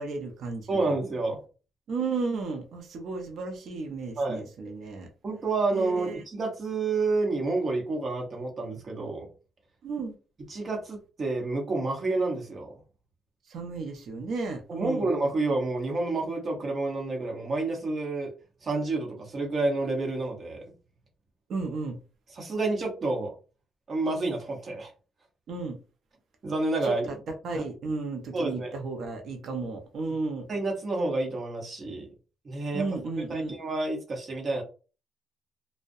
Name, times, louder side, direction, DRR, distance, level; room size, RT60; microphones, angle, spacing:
voice 1, 0.0-1.0 1.9-5.1 5.7-6.2 9.8-10.1 13.5-15.1 21.5-22.0 25.5-25.8 26.8-26.9 27.3-30.5 32.7-33.6, right 3 dB, 65° right, 3 dB, 0.5 m, -33 dB
voice 2, 0.7-1.4 4.2-4.4 5.2-9.3 10.5-12.7 14.7-18.3 18.6-20.6 22.3-23.3 23.9-24.9 26.4-27.0 27.5-27.6 28.3-28.8 30.5-32.1 32.4-32.8 33.3-34.6, right 3 dB, 45° right, 1 dB, 0.9 m, -29 dB
2.3 x 2.1 x 2.6 m, 0.35 s
cardioid pair, 90°, 0 cm